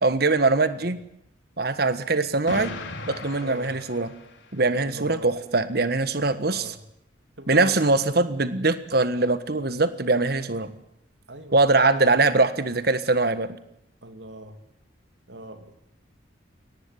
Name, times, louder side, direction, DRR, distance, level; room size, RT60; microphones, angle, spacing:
voice 1, 0.0-1.0 1.6-2.7 3.1-4.1 4.5-6.7 7.5-10.8 11.5-13.5, right 3 dB, 55° right, 12 dB, 1.5 m, -22 dB
Explosion, 2.5-4.6, left 2 dB, 75° left, 3.5 m, -37 dB
voice 2, 3.4-3.7 4.8-5.3 6.3-6.8 7.4-7.7 11.3-12.1 14.0-14.5 15.3-15.7, right 1 dB, 70° right, 8 dB, 2.9 m, -39 dB
23.0 x 18.5 x 9.9 m, 0.76 s
head